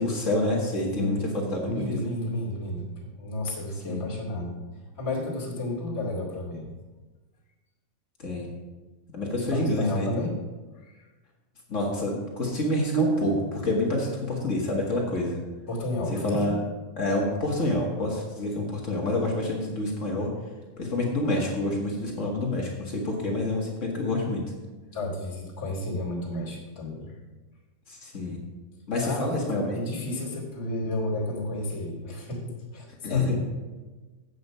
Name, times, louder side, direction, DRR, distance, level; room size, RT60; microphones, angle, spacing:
voice 1, 0.0-1.2 1.5-2.0 3.8-4.0 8.2-8.5 9.1-10.3 11.7-15.4 16.2-16.6 17.0-20.3 20.8-24.4 27.9-28.4 28.9-29.8 33.0-33.5, left 2 dB, 45° left, -2 dB, 1.0 m, -27 dB
voice 2, 0.9-1.3 1.6-4.6 5.0-6.7 9.5-10.4 10.7-11.1 15.7-16.6 24.9-27.1 29.0-33.5, left 1 dB, 5° left, -2 dB, 1.7 m, -32 dB
sound 1, 12.9-14.0, right 5 dB, 85° right, 2.9 m, -29 dB
8.3 x 7.7 x 5.5 m, 1.3 s
omnidirectional pair, 3.8 m